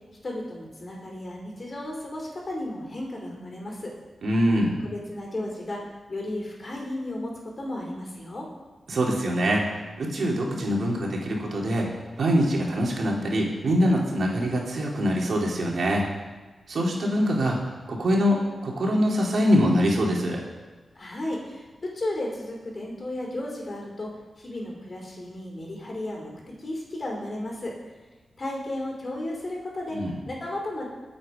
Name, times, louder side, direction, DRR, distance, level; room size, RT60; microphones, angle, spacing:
voice 1, 0.2-3.9 4.8-5.8 6.1-7.3 7.6-8.5 21.0-21.7 21.9-24.1 24.4-26.3 26.6-27.7 28.4-30.0 30.3-30.9, left 1 dB, 45° left, -1 dB, 5.2 m, -34 dB
voice 2, 4.2-4.8 8.9-11.8 12.2-16.1 16.7-17.6 17.9-20.4 29.9-30.1, equal, 70° right, -2 dB, 3.4 m, -24 dB
20.5 x 8.7 x 5.4 m, 1.3 s
cardioid pair, 70°, 0 cm